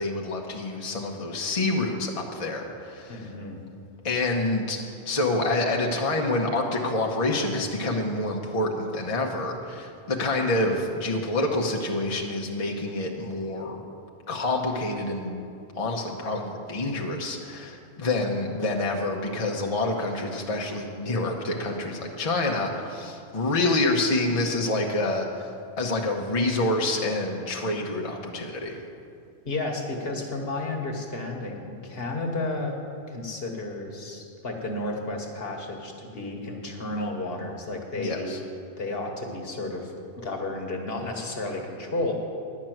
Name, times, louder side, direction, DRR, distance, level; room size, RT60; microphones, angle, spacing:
voice 1, 0.0-3.3 4.0-4.8 5.0-13.8 14.3-28.8 38.0-38.4, left 2 dB, 35° left, 0 dB, 0.9 m, -27 dB
voice 2, 3.1-3.6 29.5-32.8 33.1-38.3 38.8-42.1, left 2 dB, 55° left, 2 dB, 1.5 m, -32 dB
10.5 x 6.1 x 9.0 m, 2.5 s
omnidirectional pair, 1.2 m